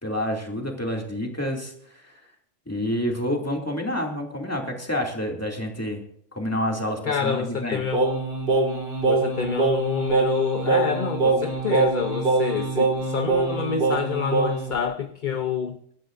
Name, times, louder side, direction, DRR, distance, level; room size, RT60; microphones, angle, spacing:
voice 1, 0.0-2.3 2.7-6.0 6.3-7.8, equal, 10° left, 2.5 m, -28 dB
voice 2, 7.1-8.0 9.0-15.8, left 6 dB, 45° left, 0.8 m, -27 dB
Singing, 7.9-14.7, right 3 dB, 45° right, 2.2 m, -23 dB
24.0 x 12.0 x 2.6 m
omnidirectional pair, 1.3 m